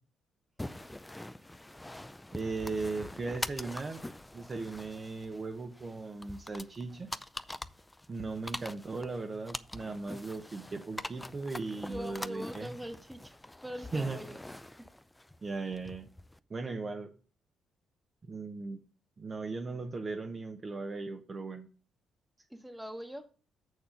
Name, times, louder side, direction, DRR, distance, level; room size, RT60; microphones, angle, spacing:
sound 1, 0.6-16.4, left 1 dB, 10° left, 0.4 m, -44 dB
voice 1, 2.3-4.1 4.3-7.1 8.1-12.7 13.9-14.2 15.4-16.1 16.5-17.1 18.2-18.8 19.2-21.7, right 3 dB, 35° right, 0.9 m, -37 dB
voice 2, 11.8-13.4 13.6-14.4 14.8-14.9 22.5-23.2, equal, 5° right, 1.3 m, -42 dB
6.9 x 6.5 x 5.0 m
cardioid pair, 85°, 0 cm